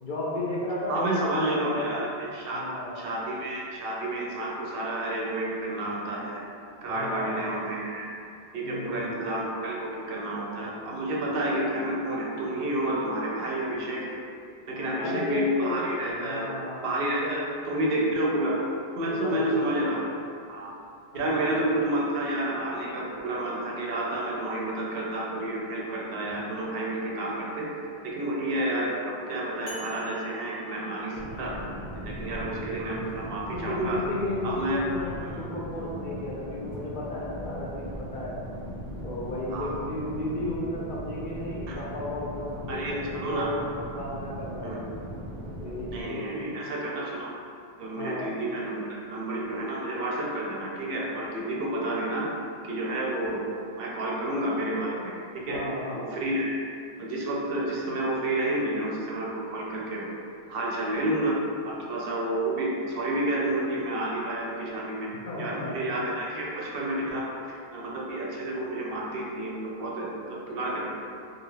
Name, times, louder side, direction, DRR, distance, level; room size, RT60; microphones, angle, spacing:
voice 1, 0.0-2.0 2.5-2.9 6.9-7.6 8.6-9.1 14.7-15.8 16.2-16.9 17.2-17.4 19.1-20.0 21.1-21.6 33.5-38.3 39.0-43.7 43.9-44.8 45.6-46.5 48.0-48.3 55.5-56.1 65.3-65.9, left 1 dB, 60° left, -5 dB, 0.7 m, -33 dB
voice 2, 0.9-2.7 3.0-6.4 6.8-8.1 8.5-14.2 14.7-16.4 16.8-18.6 19.0-20.0 20.5-20.7 21.1-27.7 28.0-28.9 29.3-31.5 31.9-34.0 34.4-34.8 35.2-35.4 39.5-39.7 41.7-41.8 42.7-43.5 44.6-44.8 45.9-47.3 47.8-52.3 52.6-53.4 53.8-55.6 55.9-56.5 57.0-60.1 60.5-61.4 61.6-65.1 65.4-70.9, right 1 dB, 70° right, -3 dB, 0.7 m, -30 dB
sound 1, 29.7-31.7, equal, 90° left, 1.0 m, -49 dB
sound 2, 31.1-46.0, equal, 40° right, 0.4 m, -39 dB
2.5 x 2.3 x 3.1 m, 2.4 s
omnidirectional pair, 1.0 m